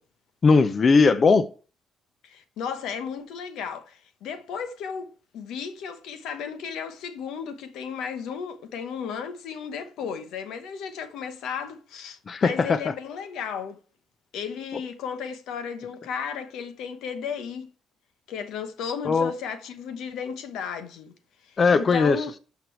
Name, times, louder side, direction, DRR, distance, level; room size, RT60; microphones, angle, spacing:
voice 1, 0.4-1.4 12.3-12.9 19.0-19.3 21.6-22.4, left 4 dB, 45° left, 0.7 m, -19 dB
voice 2, 2.2-13.8 14.3-17.7 18.3-21.1 21.4-22.3, left 7 dB, 80° left, 1.0 m, -34 dB
12.5 x 5.3 x 3.2 m
supercardioid pair, 60°, 0 cm